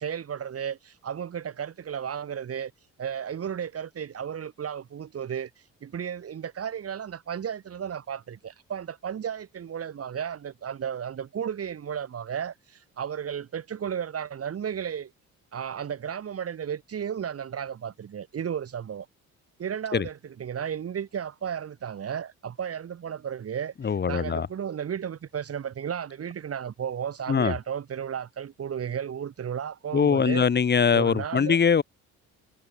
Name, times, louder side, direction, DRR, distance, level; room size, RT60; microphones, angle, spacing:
voice 1, 0.0-2.7 3.0-5.5 5.8-15.1 15.5-19.1 19.6-30.4 30.9-31.6, right 8 dB, 50° right, 2.4 m, -34 dB
voice 2, 23.8-24.5 27.3-27.5 29.9-31.8, left 6 dB, 35° left, 1.3 m, -22 dB
cardioid pair, 90°, 30 cm